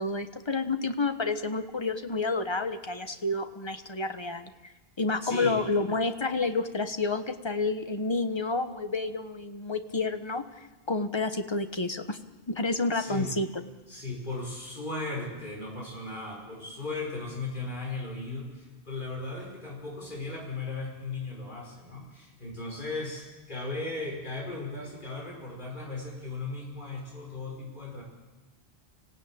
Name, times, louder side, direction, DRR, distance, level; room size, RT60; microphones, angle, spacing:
voice 1, 0.0-4.5 5.0-10.4 10.9-12.2 12.5-13.5, left 3 dB, 25° left, 8 dB, 1.2 m, -29 dB
voice 2, 5.2-5.6 12.9-13.4 13.9-28.0, left 3 dB, 45° left, -2 dB, 5.6 m, -37 dB
26.0 x 16.5 x 8.9 m, 1.2 s
omnidirectional pair, 1.1 m